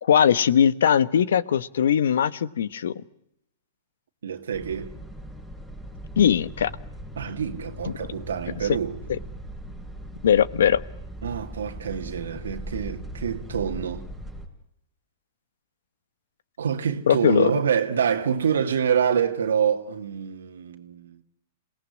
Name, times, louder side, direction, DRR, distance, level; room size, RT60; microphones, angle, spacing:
voice 1, 0.0-2.9 6.2-6.7 9.1-9.2 10.2-10.8 17.1-17.5, left 9 dB, 75° left, 1.1 m, -20 dB
voice 2, 4.2-4.9 7.2-9.0 11.2-14.1 16.6-21.2, right 7 dB, 85° right, 2.0 m, -26 dB
front ST coach bus light passenger presence, 4.5-14.5, right 1 dB, 5° left, 5.6 m, -39 dB
27.5 x 18.5 x 9.8 m
hypercardioid pair, 125°, 0 cm